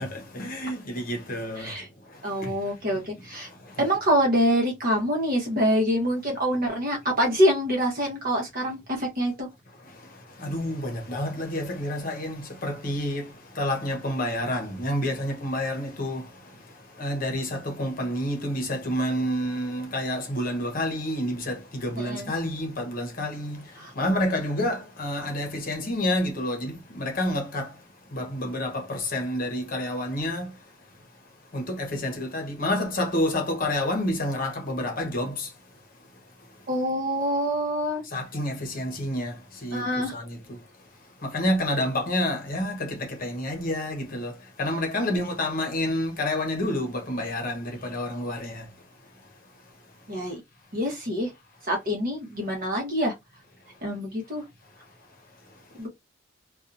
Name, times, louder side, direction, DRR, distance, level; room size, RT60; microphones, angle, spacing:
voice 1, 0.0-3.1 3.3-3.8 9.8-36.7 38.0-50.3 54.8-54.9 55.3-55.9, left 1 dB, 45° left, 0.8 m, -30 dB
voice 2, 2.2-3.5 3.8-9.5 22.0-22.3 23.8-23.9 36.7-38.0 39.7-40.1 50.1-50.4 50.7-51.3 51.7-53.1 53.8-54.4 55.7-55.9, equal, 45° right, 1.0 m, -25 dB
2.7 x 2.3 x 2.5 m
head